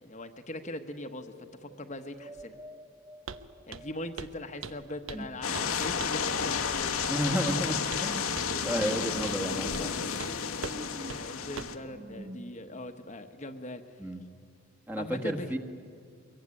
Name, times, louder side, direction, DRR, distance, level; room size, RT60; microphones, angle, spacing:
voice 1, 0.0-2.6 3.7-6.8 9.0-9.1 11.0-14.0 15.0-15.5, left 1 dB, 35° left, 5 dB, 1.1 m, -41 dB
sound 1, 0.6-4.2 5.4-12.4, equal, 30° right, 1.5 m, -50 dB
Walk footsteps, 3.3-3.4 3.7-3.9 4.2-4.4 4.6-5.3 5.5-5.7 6.0-6.3 7.0-7.2 7.5-8.1 8.4-8.5 8.8-8.9 9.3-9.4 9.7-9.9 10.2-10.3 10.6-10.8 11.1-11.2 11.6-11.8, right 5 dB, 70° right, 1.0 m, -41 dB
voice 2, 5.1-5.9 7.1-8.3 8.6-9.9 14.0-14.2 14.9-15.6, equal, 10° right, 2 dB, 1.4 m, -32 dB
sound 2, 5.4-11.8, left 6 dB, 85° left, 1.3 m, -31 dB
24.0 x 22.5 x 9.7 m, 2.2 s
head